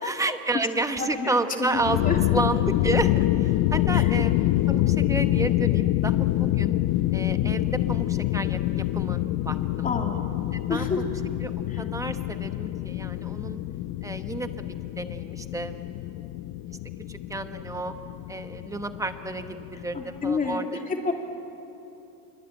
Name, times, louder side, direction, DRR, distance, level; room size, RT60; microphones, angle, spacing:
voice 1, 0.0-6.7 7.1-9.2 9.4-9.9 10.7-11.1 11.4-11.5 11.8-13.6 14.0-14.7 15.0-16.4 17.1-17.9 18.3-20.8, right 2 dB, 5° right, 8 dB, 1.1 m, -31 dB
voice 2, 1.0-2.2 3.9-4.0 7.4-7.5 9.8-10.2 10.7-11.0 11.7-11.8 19.9-21.1, left 4 dB, 20° left, 2 dB, 2.8 m, -29 dB
sound 1, 1.7-20.6, left 15 dB, 45° left, 0.6 m, -26 dB
26.5 x 23.0 x 9.1 m, 2.9 s
cardioid pair, 155°, 43 cm